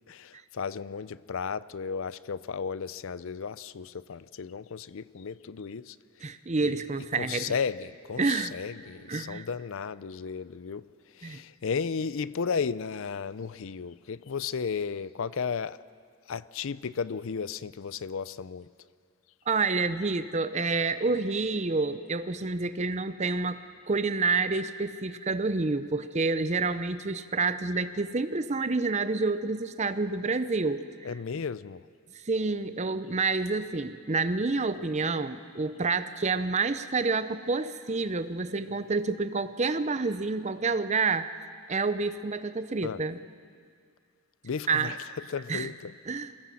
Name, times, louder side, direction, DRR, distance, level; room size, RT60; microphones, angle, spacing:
voice 1, 0.1-6.0 6.6-6.8 7.1-10.8 11.1-15.8 16.3-18.7 31.0-31.9 42.8-43.0 44.4-45.0 45.3-45.9, left 6 dB, 60° left, 0.5 m, -34 dB
voice 2, 6.2-7.5 8.2-8.5 9.1-9.5 11.2-11.4 19.5-23.6 23.9-30.8 32.3-41.3 41.7-43.2 44.7-45.0 45.5-45.7 46.1-46.3, right 3 dB, 30° right, 0.6 m, -28 dB
23.5 x 16.0 x 7.6 m
head